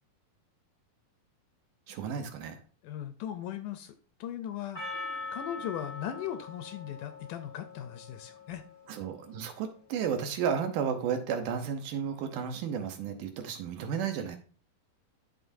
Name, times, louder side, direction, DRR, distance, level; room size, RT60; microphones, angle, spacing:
voice 1, 1.9-2.6 8.9-14.4, right 7 dB, 75° right, 7 dB, 2.3 m, -33 dB
voice 2, 2.8-3.9 4.2-8.6, left 10 dB, 80° left, 9 dB, 2.0 m, -38 dB
Percussion, 4.7-9.2, left 3 dB, 30° left, 0.4 m, -42 dB
13.0 x 4.4 x 2.6 m, 0.40 s
omnidirectional pair, 4.0 m